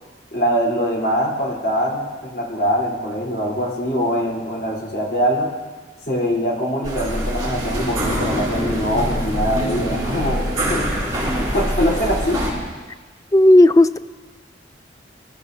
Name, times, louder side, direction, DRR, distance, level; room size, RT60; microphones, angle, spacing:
voice 1, 0.3-5.5 6.1-10.9 11.2-12.4, equal, 55° left, -2 dB, 3.7 m, -23 dB
sound 1, 6.8-12.5, equal, 20° right, 5.9 m, -24 dB
voice 2, 13.3-14.0, left 1 dB, 20° left, 13 dB, 0.3 m, -11 dB
24.5 x 15.0 x 2.7 m, 1.3 s
head